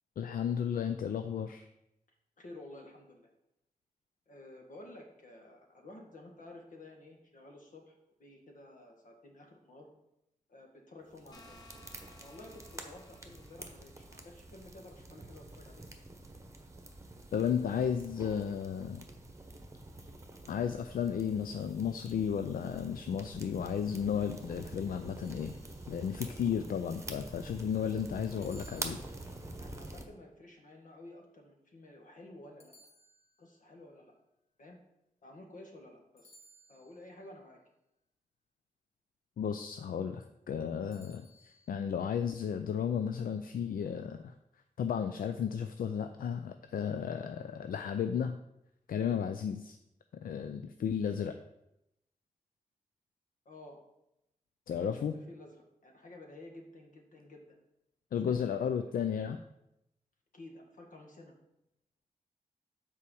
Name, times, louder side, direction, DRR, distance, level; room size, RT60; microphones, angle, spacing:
voice 1, 0.2-1.7 17.3-19.0 20.5-25.6 25.9-29.0 39.4-44.3 44.8-48.4 48.9-49.8 50.2-51.3 54.7-55.1 58.1-59.4, left 7 dB, 85° left, 8 dB, 0.4 m, -33 dB
voice 2, 2.4-3.3 4.3-9.9 10.5-11.6 12.2-15.9 28.3-28.7 29.6-32.7 33.4-34.1 34.6-34.8 35.2-36.4 36.7-37.6 53.4-53.8 54.8-57.4 60.3-61.3, left 2 dB, 65° left, 1 dB, 1.6 m, -52 dB
sound 1, 11.1-30.1, right 2 dB, 20° right, 1.1 m, -47 dB
sound 2, 11.3-14.2, left 2 dB, 30° left, 1.2 m, -59 dB
sound 3, 25.2-26.1 28.4-29.7 32.6-33.7 36.2-37.1 40.9-41.7, right 1 dB, 45° left, 1.3 m, -61 dB
5.8 x 4.7 x 6.3 m, 0.85 s
wide cardioid pair, 85°, 14 cm